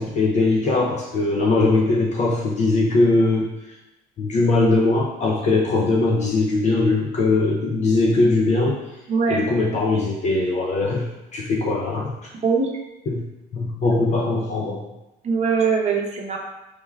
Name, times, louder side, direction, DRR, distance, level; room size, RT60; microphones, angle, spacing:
voice 1, 0.0-3.8 4.2-8.8 9.3-12.3 13.1-13.3 13.5-14.9, left 2 dB, 45° left, -2 dB, 0.5 m, -20 dB
voice 2, 9.1-9.4 12.4-12.7 13.9-14.0 15.2-16.4, right 5 dB, 40° right, -1 dB, 0.7 m, -21 dB
4.5 x 3.3 x 2.2 m, 0.97 s
cardioid pair, 110°, 17 cm